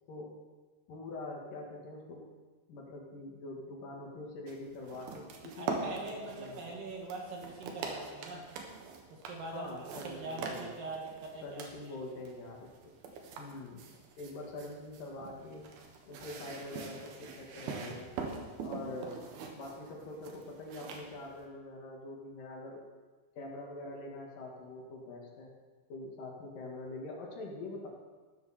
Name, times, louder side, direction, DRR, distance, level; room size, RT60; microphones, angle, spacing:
voice 1, 0.9-2.3 2.7-6.1 6.3-6.7 9.5-10.9 11.4-12.9 13.4-13.8 14.2-15.7 16.1-18.2 18.6-19.2 19.5-22.8 23.4-25.5 25.9-27.9, left 2 dB, 65° left, -1 dB, 3.6 m, -44 dB
sound 1, 4.5-21.4, right 5 dB, 80° right, 3.4 m, -44 dB
voice 2, 5.6-8.5 9.1-9.7 10.0-12.0, right 2 dB, 65° right, -1 dB, 3.2 m, -42 dB
15.5 x 12.5 x 4.4 m, 1.4 s
omnidirectional pair, 4.3 m